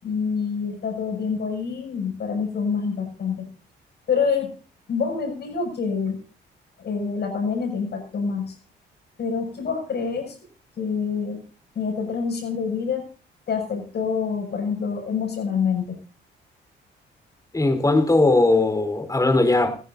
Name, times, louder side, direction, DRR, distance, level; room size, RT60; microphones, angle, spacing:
voice 1, 0.0-3.5 4.1-4.5 4.9-6.2 6.8-8.6 9.2-10.4 10.8-11.4 11.8-13.1 13.5-16.0, left 5 dB, 55° left, 4 dB, 6.9 m, -26 dB
voice 2, 17.5-19.8, left 2 dB, 15° left, 7 dB, 4.1 m, -19 dB
29.5 x 10.5 x 2.7 m, 0.36 s
cardioid pair, 90°, 20 cm